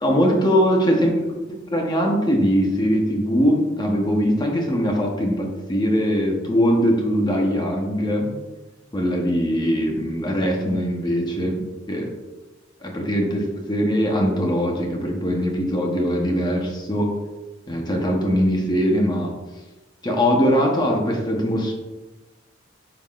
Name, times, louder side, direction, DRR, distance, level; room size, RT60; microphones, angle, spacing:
voice 1, 0.0-1.1 1.5-8.3 8.9-12.1 12.8-13.4 13.7-17.1 17.7-19.3 20.0-21.7, equal, 20° left, 1 dB, 1.0 m, -21 dB
9.5 x 5.6 x 2.5 m, 1.2 s
head